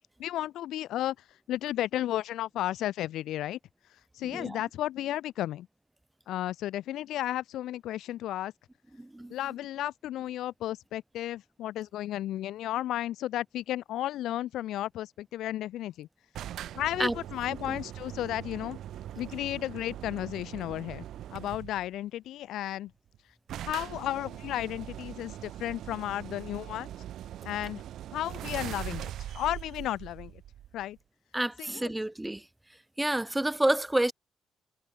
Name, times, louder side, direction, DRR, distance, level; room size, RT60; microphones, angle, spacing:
voice 1, 0.2-1.2 1.5-3.6 4.2-5.7 6.3-8.5 9.3-16.1 16.7-18.8 19.2-21.0 21.3-22.9 23.7-26.9 27.4-27.8 28.1-30.4 30.7-31.0 31.6-31.9, left 13 dB, 80° left, 0.7 m, -33 dB
voice 2, 4.3-4.6 9.0-9.3 17.0-17.2 17.7-17.8 31.3-32.4 33.0-34.1, right 1 dB, 10° right, 1.6 m, -29 dB
sound 1, 16.3-21.9 22.9-23.0 23.1-23.2 23.5-31.0, right 12 dB, 75° right, 1.2 m, -41 dB
cardioid pair, 90°, 0 cm